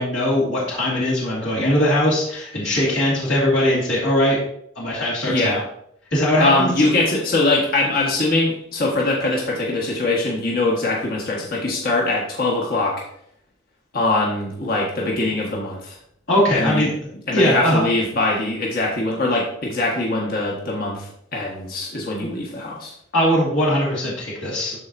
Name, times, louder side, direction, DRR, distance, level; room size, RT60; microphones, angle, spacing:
voice 1, 0.0-4.4 4.8-5.6 6.1-6.7 16.3-16.9 17.3-17.8 23.1-24.8, left 1 dB, 75° left, -6 dB, 2.5 m, -20 dB
voice 2, 5.3-5.6 6.4-13.0 13.9-16.0 16.5-16.9 17.3-22.9, left 2 dB, 50° left, -3 dB, 1.4 m, -22 dB
12.5 x 4.4 x 2.7 m, 0.71 s
head